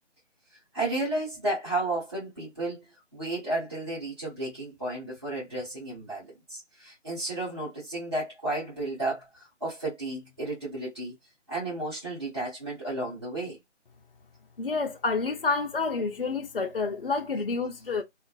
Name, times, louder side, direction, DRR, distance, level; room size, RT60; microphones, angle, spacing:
voice 1, 0.7-2.8 3.1-11.1 11.5-13.6, right 2 dB, 20° right, 0.9 m, -33 dB
voice 2, 14.6-18.0, left 4 dB, 50° left, 0.5 m, -29 dB
2.4 x 2.2 x 2.5 m
figure-of-eight pair, 180°, 37 cm